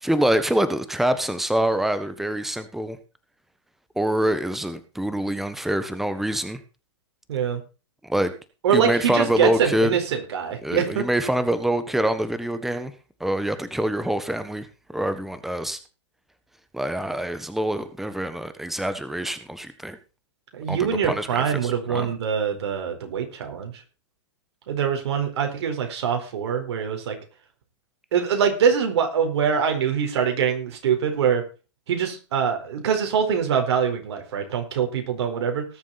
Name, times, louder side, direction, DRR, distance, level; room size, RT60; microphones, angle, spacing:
voice 1, 0.0-3.0 4.0-6.6 8.0-8.3 8.7-10.0 10.6-12.9 13.2-15.8 16.7-20.0 20.7-22.1, right 1 dB, ahead, 11 dB, 1.4 m, -25 dB
voice 2, 7.3-7.6 8.6-11.1 20.5-23.7 24.7-27.2 28.1-31.4 31.9-35.6, right 7 dB, 65° right, 5 dB, 4.6 m, -24 dB
19.0 x 7.4 x 4.2 m, 0.33 s
hypercardioid pair, 130°, 15 cm